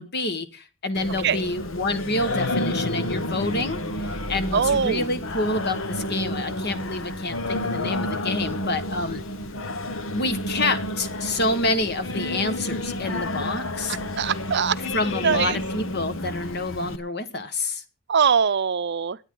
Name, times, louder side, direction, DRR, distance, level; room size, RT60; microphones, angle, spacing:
voice 1, 0.0-9.2 10.1-14.0 14.9-17.8, left 2 dB, 55° left, 1.6 m, -28 dB
Singing, 0.9-17.0, left 1 dB, 75° left, 1.3 m, -30 dB
voice 2, 4.5-5.1 14.2-14.8 15.2-15.6 18.1-19.2, right 6 dB, 60° right, 0.6 m, -22 dB
21.5 x 9.3 x 3.9 m
head